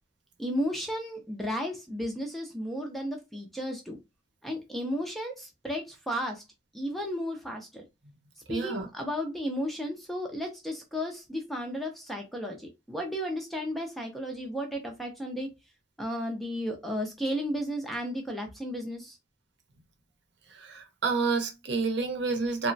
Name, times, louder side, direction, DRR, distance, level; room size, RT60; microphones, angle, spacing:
voice 1, 0.4-4.0 4.4-6.4 6.7-7.8 8.5-15.5 16.0-19.2, equal, ahead, 0.4 m, -34 dB
voice 2, 8.5-8.9 20.5-22.7, right 4 dB, 65° right, 0.7 m, -29 dB
2.9 x 2.1 x 2.6 m
head